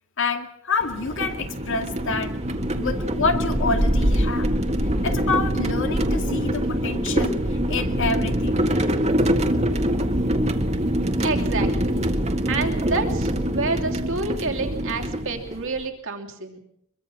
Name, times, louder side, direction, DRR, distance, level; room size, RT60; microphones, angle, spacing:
voice 1, 0.2-2.4 2.7-4.5 5.0-8.7, left 4 dB, 60° left, 6 dB, 2.3 m, -27 dB
sound 1, 0.8-15.8, equal, 30° right, 1.8 m, -24 dB
voice 2, 11.2-12.1 12.5-16.6, right 3 dB, 60° right, 4 dB, 3.0 m, -28 dB
24.0 x 22.5 x 6.3 m, 0.74 s
head